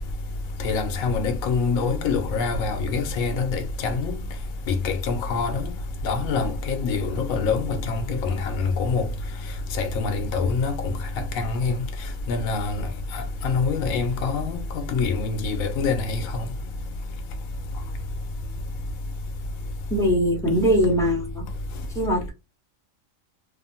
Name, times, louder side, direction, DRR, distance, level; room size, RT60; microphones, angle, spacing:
voice 1, 0.6-4.1 4.7-5.7 6.0-9.1 9.7-10.9 11.4-11.8 12.3-12.9 13.1-16.4, left 4 dB, 80° left, 1.0 m, -25 dB
voice 2, 19.9-21.5 21.9-22.3, equal, 5° left, 0.7 m, -21 dB
2.8 x 2.0 x 2.6 m
omnidirectional pair, 1.5 m